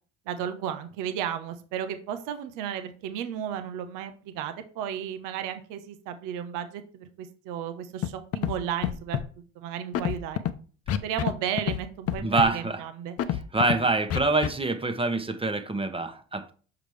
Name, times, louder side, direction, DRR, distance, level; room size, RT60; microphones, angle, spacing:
voice 1, 0.3-9.2 9.6-10.4 11.0-13.2, right 9 dB, 75° right, 0.9 m, -34 dB
Scratching (performance technique), 8.0-8.1 8.3-8.6 8.8-9.2 9.9-10.5 10.9-11.3 11.6-11.8 12.1-12.5 13.2-13.8 14.1-14.5, left 11 dB, 50° left, 0.7 m, -27 dB
voice 2, 12.2-12.8 13.5-16.5, right 3 dB, 15° right, 1.1 m, -25 dB
7.0 x 5.0 x 3.3 m
supercardioid pair, 75°, 31 cm